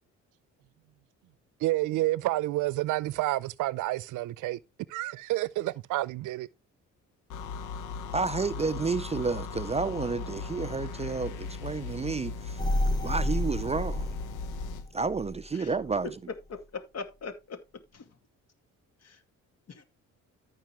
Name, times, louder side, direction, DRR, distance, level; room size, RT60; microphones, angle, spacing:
voice 1, 1.6-4.6 4.9-6.5, right 17 dB, 80° right, 0.6 m, -29 dB
sound 1, 7.3-14.9, left 5 dB, 85° left, 1.1 m, -38 dB
voice 2, 8.1-12.6 13.0-14.1 14.9-16.2, right 4 dB, 20° right, 0.4 m, -30 dB
sound 2, 12.6-15.4 15.9-16.0, left 1 dB, 15° left, 1.2 m, -30 dB
voice 3, 16.5-17.6 17.9-18.0 19.0-19.2 19.7-19.8, left 5 dB, 55° left, 2.3 m, -40 dB
14.5 x 5.6 x 3.1 m
cardioid pair, 90°, 30 cm